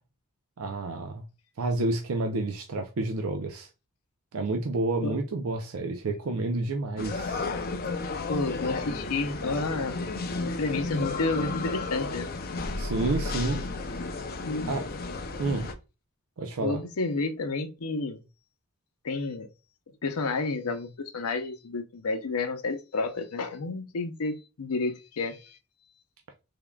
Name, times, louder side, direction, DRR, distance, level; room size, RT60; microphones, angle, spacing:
voice 1, 0.6-1.2 1.6-3.7 4.3-7.4 12.8-13.6 14.0-14.1 14.7-14.8 15.4-15.7 16.4-16.8, right 2 dB, 70° right, 0.5 m, -29 dB
sound 1, 7.0-15.7, left 3 dB, 45° left, 0.5 m, -33 dB
voice 2, 8.2-10.0 10.3-12.3 14.4-14.8 16.6-18.2 19.0-19.5 20.0-25.6, left 3 dB, 90° left, 0.6 m, -30 dB
3.6 x 3.5 x 2.2 m
head